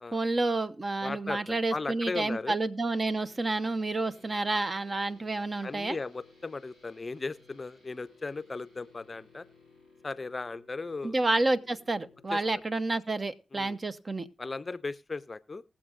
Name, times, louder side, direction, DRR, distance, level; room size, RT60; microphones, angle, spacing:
voice 1, 0.1-6.0 11.0-14.3, right 2 dB, 40° right, 11 dB, 0.8 m, -29 dB
voice 2, 1.0-2.6 5.6-9.4 10.0-11.2 12.3-12.4 13.5-13.8 14.4-15.6, left 3 dB, 40° left, 16 dB, 0.5 m, -37 dB
sound 1, 2.8-12.6, left 3 dB, 80° right, 4.2 m, -59 dB
20.0 x 7.2 x 2.4 m, 0.36 s
supercardioid pair, 45°, 0 cm